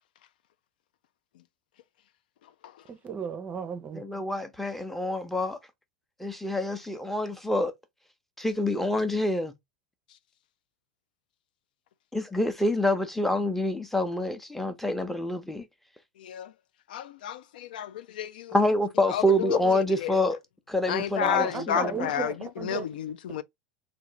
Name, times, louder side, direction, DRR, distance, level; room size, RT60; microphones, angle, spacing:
voice 1, 2.9-4.0 21.2-22.8 23.3-23.4, right 6 dB, 30° right, 0.6 m, -35 dB
voice 2, 3.9-5.6 6.2-7.7 8.4-9.5 12.1-15.7 18.5-20.4 20.7-22.1, left 1 dB, 5° left, 0.7 m, -27 dB
voice 3, 16.2-16.5 16.9-18.6 19.1-20.2 20.9-23.4, left 11 dB, 65° left, 0.4 m, -31 dB
3.6 x 2.6 x 3.0 m
figure-of-eight pair, 85°, 5 cm